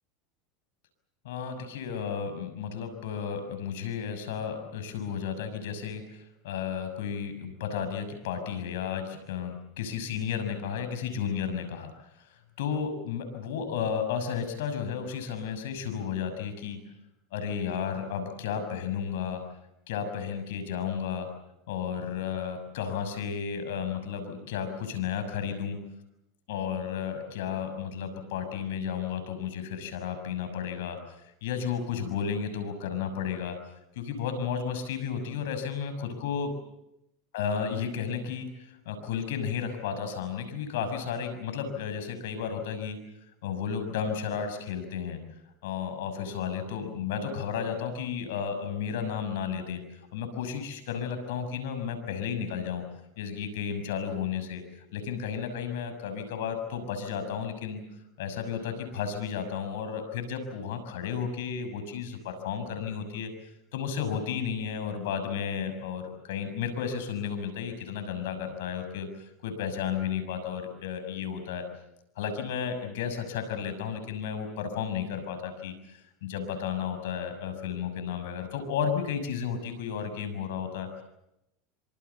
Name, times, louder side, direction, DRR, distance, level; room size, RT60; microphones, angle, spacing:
voice 1, 1.2-11.9 12.1-12.3 12.6-16.8 17.3-19.4 19.9-21.3 21.7-25.8 26.5-31.0 31.4-33.6 33.9-36.5 37.3-43.0 43.4-45.2 45.6-49.8 50.1-52.8 53.2-54.6 54.9-57.8 58.2-63.3 63.7-71.6 72.1-81.0, left 7 dB, 80° left, 8 dB, 6.3 m, -33 dB
26.0 x 25.5 x 7.1 m, 0.86 s
supercardioid pair, 115°, 0 cm